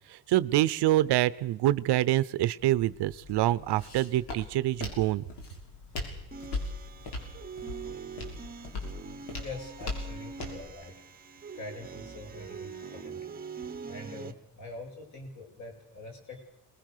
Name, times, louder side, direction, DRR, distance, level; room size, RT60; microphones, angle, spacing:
voice 1, 0.1-5.2, right 14 dB, 80° right, 16 dB, 0.9 m, -26 dB
Walk footsteps, 2.6-10.7, left 3 dB, 75° left, 6.4 m, -40 dB
sound 1, 6.3-14.3, right 5 dB, 20° right, 1.1 m, -43 dB
voice 2, 9.4-10.9 11.5-13.3 13.8-16.4, left 2 dB, 45° left, 1 dB, 7.3 m, -44 dB
27.5 x 20.5 x 6.8 m, 0.78 s
cardioid pair, 175°, 40 cm